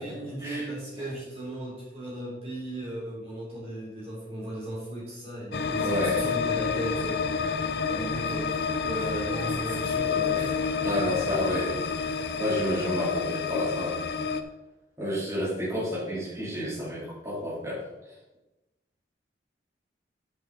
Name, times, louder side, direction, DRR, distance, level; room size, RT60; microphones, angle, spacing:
voice 1, 0.0-11.3, right 1 dB, 35° right, -7 dB, 3.2 m, -37 dB
sound 1, 5.5-14.4, left 5 dB, 70° left, 0.6 m, -29 dB
voice 2, 5.7-6.2 10.8-12.1 12.4-13.9 15.0-17.8, left 1 dB, 20° right, -9 dB, 3.3 m, -30 dB
10.5 x 5.7 x 3.9 m, 1.0 s
head